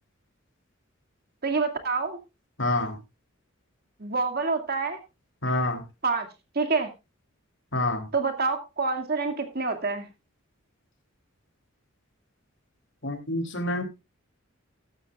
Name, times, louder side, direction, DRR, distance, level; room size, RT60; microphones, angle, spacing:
voice 1, 1.4-2.2 4.0-5.0 6.0-6.3 6.6-6.9 8.1-10.1, right 4 dB, 50° right, 5 dB, 2.2 m, -27 dB
voice 2, 2.6-3.0 5.4-5.8 7.7-8.1 13.0-13.8, left 2 dB, 60° left, 7 dB, 3.1 m, -27 dB
15.0 x 12.5 x 2.4 m, 0.25 s
head